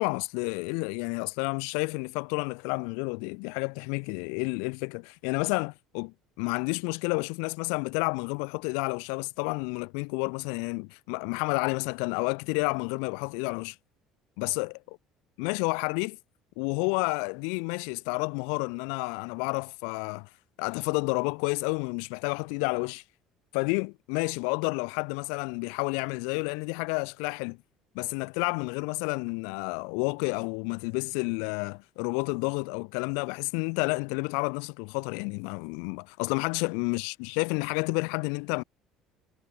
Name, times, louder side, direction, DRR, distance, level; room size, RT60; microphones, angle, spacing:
voice 1, 0.0-13.8 14.4-14.8 15.4-16.2 16.6-20.3 20.6-23.0 23.5-27.6 27.9-38.6, left 40 dB or more, 65° left, 2.2 m, -30 dB
figure-of-eight pair, 60°, 0 cm